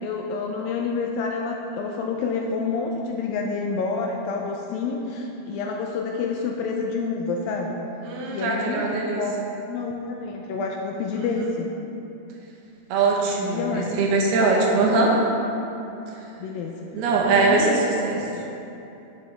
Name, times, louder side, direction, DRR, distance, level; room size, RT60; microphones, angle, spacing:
voice 1, 0.0-7.8 8.3-8.9 9.2-11.7 13.4-13.9 14.5-15.2 16.4-16.8 17.3-17.8, left 4 dB, 85° left, 1 dB, 2.1 m, -28 dB
voice 2, 8.0-9.2 11.1-11.3 12.9-15.1 16.9-17.8 18.0-18.2, right 3 dB, 80° right, -2 dB, 3.0 m, -22 dB
10.0 x 9.2 x 3.4 m, 2.9 s
omnidirectional pair, 4.6 m